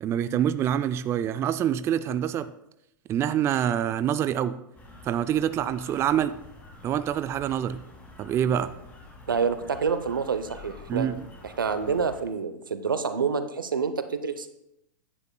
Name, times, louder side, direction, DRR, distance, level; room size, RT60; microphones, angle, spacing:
voice 1, 0.0-2.5 3.1-4.6 5.0-6.4 6.8-7.8 8.2-8.7 10.9-11.2, right 10 dB, 25° right, 0.3 m, -26 dB
sound 1, 4.7-12.2, left 2 dB, 15° left, 2.3 m, -48 dB
voice 2, 9.3-11.1 11.4-14.5, right 5 dB, 90° right, 0.7 m, -27 dB
10.0 x 9.6 x 2.3 m
hypercardioid pair, 105°, 11 cm